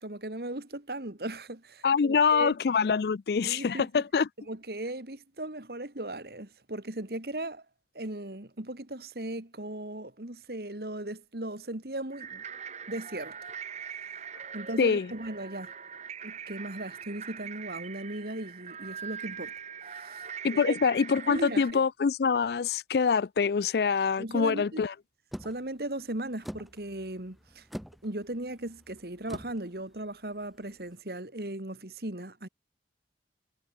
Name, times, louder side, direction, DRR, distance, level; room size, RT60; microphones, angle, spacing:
voice 1, 0.0-2.6 3.4-4.0 4.5-7.6 7.9-12.4 12.9-13.4 14.5-15.7 16.2-19.5 19.9-20.2 20.5-20.9 21.3-21.8 24.2-24.8 25.4-27.7 28.0-32.5, right 1 dB, 60° right, 2.2 m, -37 dB
voice 2, 1.8-4.3 14.8-15.1 20.4-24.9, left 5 dB, 65° left, 0.4 m, -25 dB
sound 1, 12.1-21.7, right 7 dB, 40° right, 1.8 m, -42 dB
sound 2, 25.3-30.9, equal, ahead, 3.2 m, -46 dB
head